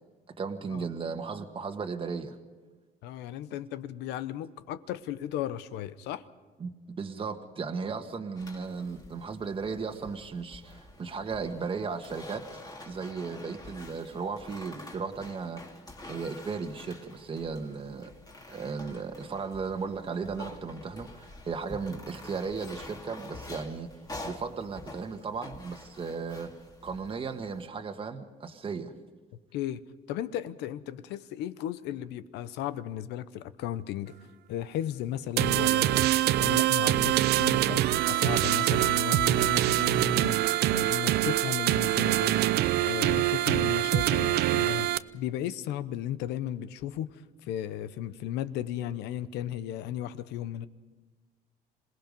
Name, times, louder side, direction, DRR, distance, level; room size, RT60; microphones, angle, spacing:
voice 1, 0.4-2.3 6.6-12.4 12.9-15.6 16.1-18.1 18.5-23.9 24.2-26.5 26.8-28.9, right 5 dB, 30° right, 1.5 m, -35 dB
voice 2, 3.0-6.2 29.5-29.8 30.1-34.1 34.5-36.0 36.4-40.4 40.7-42.4 42.8-50.7, left 11 dB, 90° left, 0.9 m, -35 dB
sound 1, 8.4-27.7, left 2 dB, 20° left, 2.4 m, -47 dB
sound 2, 35.4-45.0, right 15 dB, 75° right, 0.6 m, -24 dB
27.0 x 18.5 x 5.4 m
cardioid pair, 110°, 17 cm